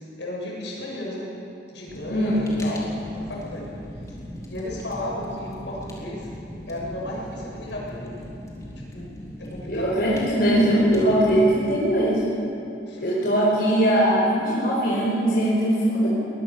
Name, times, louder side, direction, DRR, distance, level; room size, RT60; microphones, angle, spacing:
voice 1, 0.2-1.3 1.7-3.7 4.5-6.3 6.7-8.2 8.8-9.1 9.4-10.1 12.9-13.2, left 1 dB, 80° left, -4 dB, 7.7 m, -34 dB
Fire, 1.9-11.7, equal, 20° left, 3.5 m, -39 dB
voice 2, 2.1-2.4 9.7-12.3 13.0-16.1, right 1 dB, 55° left, -6 dB, 4.7 m, -21 dB
23.5 x 20.5 x 7.0 m, 2.7 s
head